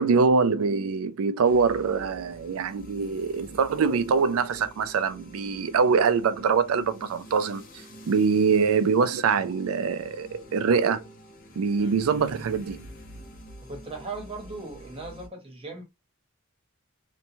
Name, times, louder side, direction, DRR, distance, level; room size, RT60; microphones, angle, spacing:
voice 1, 0.0-7.6 8.1-11.0 11.6-12.9, right 5 dB, 80° right, 0.4 m, -24 dB
sound 1, 1.4-15.3, equal, 45° left, 0.7 m, -47 dB
voice 2, 13.6-15.8, right 3 dB, 25° right, 0.9 m, -38 dB
2.9 x 2.2 x 2.7 m
head